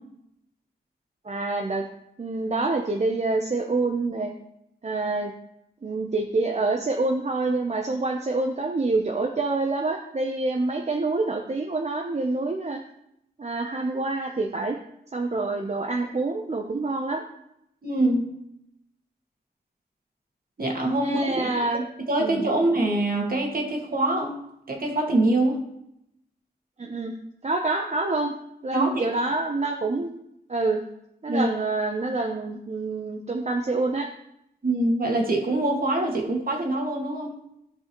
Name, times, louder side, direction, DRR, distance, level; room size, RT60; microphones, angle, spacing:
voice 1, 1.2-1.9 2.2-4.3 4.8-5.3 5.8-12.8 13.4-14.8 15.1-17.2 21.0-21.8 22.2-22.5 26.8-27.1 27.4-28.3 28.6-30.1 30.5-30.8 31.2-34.1, right 3 dB, 40° right, 2 dB, 0.8 m, -26 dB
voice 2, 17.8-18.3 20.6-21.6 22.1-24.4 24.7-25.6 28.7-29.1 31.3-31.5 34.6-37.4, right 2 dB, 55° right, 0 dB, 1.9 m, -24 dB
13.5 x 5.4 x 3.1 m, 0.79 s
wide cardioid pair, 70°, 18 cm